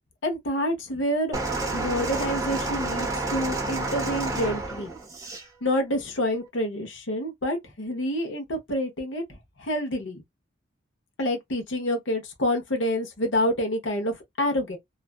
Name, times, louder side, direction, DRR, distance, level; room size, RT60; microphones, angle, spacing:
voice 1, 0.2-1.4 1.7-4.9 5.6-9.2 9.6-10.2 11.2-14.8, equal, 90° left, 0.9 m, -27 dB
sound 1, 1.3-5.5 6.3-6.5, right 2 dB, 20° right, 0.6 m, -29 dB
2.5 x 2.2 x 2.3 m
head